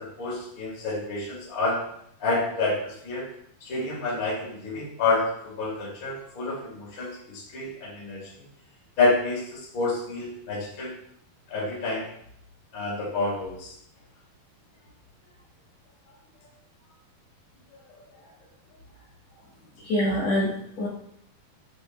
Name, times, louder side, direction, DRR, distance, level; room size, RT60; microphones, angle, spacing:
voice 1, 0.0-1.8 2.2-3.3 3.6-8.2 9.0-10.9 11.5-12.1 12.7-13.7, left 3 dB, 30° left, -6 dB, 2.0 m, -28 dB
voice 2, 19.8-20.9, left 1 dB, 65° left, -6 dB, 1.7 m, -25 dB
9.2 x 5.0 x 2.2 m, 0.71 s
omnidirectional pair, 4.6 m